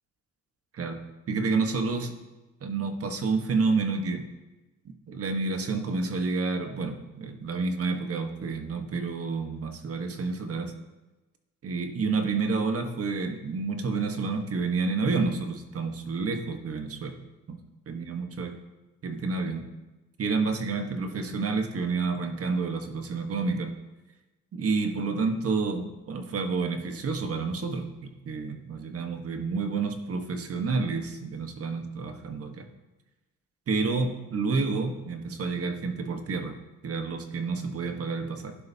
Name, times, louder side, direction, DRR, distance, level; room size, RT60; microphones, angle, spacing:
voice 1, 1.3-2.2 2.6-4.2 4.8-10.7 11.6-17.2 17.9-18.6 19.0-19.7 20.2-23.8 24.5-32.7 33.7-36.6 36.8-38.5, right 4 dB, 50° right, 5 dB, 1.4 m, -29 dB
12.0 x 10.5 x 2.8 m, 1.1 s
cardioid pair, 90°, 30 cm